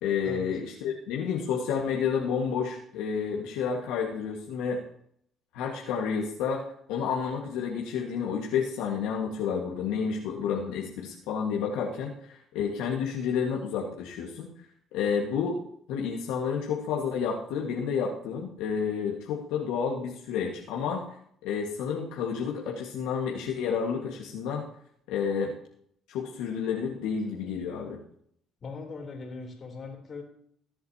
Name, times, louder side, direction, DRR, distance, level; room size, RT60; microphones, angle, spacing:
voice 1, 0.0-4.8 5.5-6.6 6.9-14.5 14.9-15.6 15.9-21.0 21.4-24.6 25.1-25.5 26.1-28.0, left 6 dB, 85° left, -1 dB, 1.6 m, -30 dB
voice 2, 28.6-30.2, left 4 dB, 50° left, 2 dB, 3.4 m, -40 dB
20.0 x 7.8 x 2.8 m, 0.67 s
cardioid pair, 85°, 0 cm